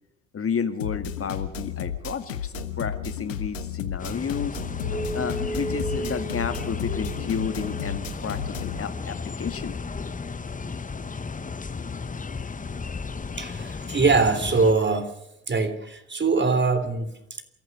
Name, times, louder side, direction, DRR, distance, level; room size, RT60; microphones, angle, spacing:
voice 1, 0.3-4.6 5.1-9.9, left 6 dB, 35° left, 9 dB, 1.7 m, -31 dB
sound 1, 0.8-8.8, left 7 dB, 90° left, 1.3 m, -33 dB
sound 2, 4.0-14.7, left 5 dB, 20° left, 1.2 m, -34 dB
sound 3, 4.8-11.8, right 2 dB, 80° right, 6.6 m, -37 dB
voice 2, 13.4-15.1 15.5-17.4, right 4 dB, 30° right, 9 dB, 3.2 m, -23 dB
28.0 x 14.5 x 6.7 m, 0.84 s
hypercardioid pair, 55°, 38 cm